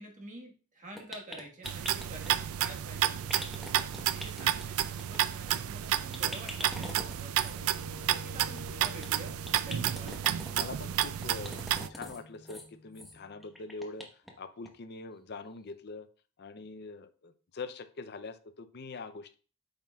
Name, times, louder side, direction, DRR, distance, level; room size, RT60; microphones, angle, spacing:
voice 1, 0.0-3.7 4.1-7.7 8.1-9.3 9.6-10.2, right 1 dB, 35° right, 1 dB, 1.5 m, -48 dB
sound 1, 1.0-2.3 3.3-4.6 5.0-5.2 5.5-5.6 5.8-5.9 6.1-7.6 8.4-9.1 9.4-10.5 11.2-12.2 12.4-12.6 12.9-13.1 13.4-14.3 14.6-14.7 15.1-15.2, equal, ahead, 1.0 m, -43 dB
sound 2, 1.6-11.9, right 11 dB, 70° right, 0.3 m, -31 dB
Wind instrument woodwind instrument, 7.5-13.6, left 4 dB, 80° left, 2.8 m, -51 dB
voice 2, 10.3-14.1 14.4-16.1 16.4-19.3, left 4 dB, 50° left, 10 dB, 0.5 m, -43 dB
8.8 x 5.7 x 2.3 m, 0.39 s
head